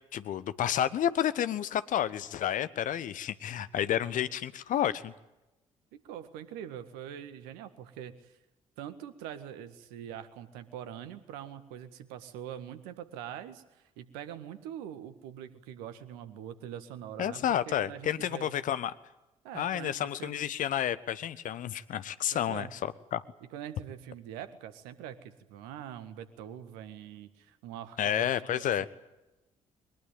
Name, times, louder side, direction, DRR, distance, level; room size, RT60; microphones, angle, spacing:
voice 1, 0.1-5.1 17.2-18.9 19.5-23.2 28.0-28.9, left 10 dB, 50° left, 15 dB, 1.1 m, -30 dB
voice 2, 5.9-8.4 8.8-18.5 19.4-20.5 22.3-22.7 23.5-28.9, right 10 dB, 65° right, 12 dB, 1.7 m, -44 dB
22.0 x 21.5 x 9.1 m, 0.98 s
figure-of-eight pair, 45°, 17 cm